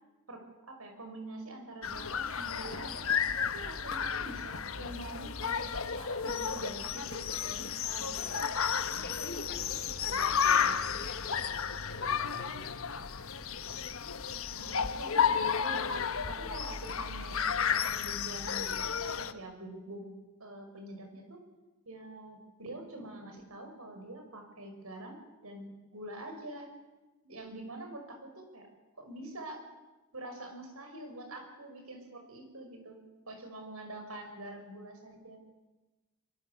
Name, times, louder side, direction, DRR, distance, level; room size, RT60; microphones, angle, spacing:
voice 1, 0.3-8.3 14.5-21.4 21.8-26.7 27.2-28.7 29.0-29.6 30.1-33.0 33.3-35.4, right 1 dB, 75° right, 4 dB, 6.2 m, -45 dB
sound 1, 1.8-19.3, left 7 dB, 65° left, 1.2 m, -32 dB
voice 2, 8.9-12.7, left 3 dB, 45° left, 6 dB, 3.9 m, -46 dB
24.0 x 23.5 x 8.4 m, 1.1 s
head